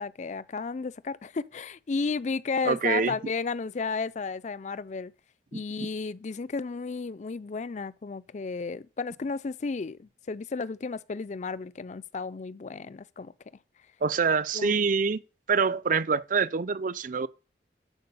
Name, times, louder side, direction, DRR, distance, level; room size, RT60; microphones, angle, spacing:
voice 1, 0.0-5.1 5.5-13.3 14.5-14.8, left 4 dB, 40° left, 0.4 m, -33 dB
voice 2, 2.6-3.1 5.5-5.6 14.0-15.2 15.5-17.3, right 5 dB, 50° right, 0.5 m, -25 dB
11.0 x 4.6 x 6.8 m
head